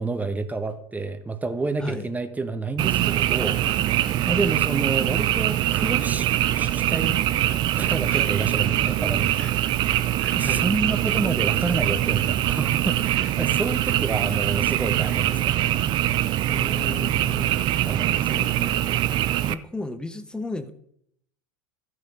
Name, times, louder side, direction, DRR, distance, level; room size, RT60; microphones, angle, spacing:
voice 1, 0.0-4.0 4.2-6.3 6.6-7.2 7.8-9.5 10.3-15.8 17.8-18.3, right 3 dB, 15° right, 9 dB, 1.3 m, -29 dB
Frog, 2.8-19.5, right 13 dB, 40° right, 0.6 m, -23 dB
voice 2, 9.3-10.7 16.5-17.6 17.9-19.0 19.5-20.7, left 2 dB, 5° left, 10 dB, 1.0 m, -35 dB
14.0 x 6.6 x 5.2 m, 0.68 s
figure-of-eight pair, 80°, 11 cm